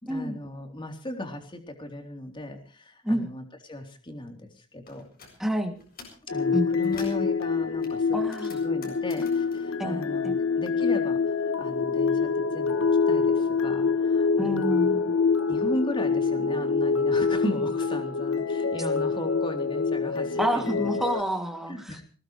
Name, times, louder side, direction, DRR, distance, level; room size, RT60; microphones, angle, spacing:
voice 1, 0.0-5.1 6.3-14.8 15.5-20.9 21.7-22.0, left 1 dB, 20° left, 4 dB, 3.7 m, -37 dB
sound 1, 4.9-5.3 5.7-6.3 6.6-7.3 7.8-10.7 11.0-12.1, left 4 dB, 40° left, 7.7 m, -49 dB
voice 2, 5.4-5.7 6.5-7.0 8.1-8.5 9.8-10.3 14.4-15.1 20.4-22.0, equal, ahead, 4 dB, 2.7 m, -29 dB
sound 2, 6.3-21.2, left 5 dB, 65° left, 1.0 m, -26 dB
22.0 x 19.0 x 3.3 m, 0.40 s
head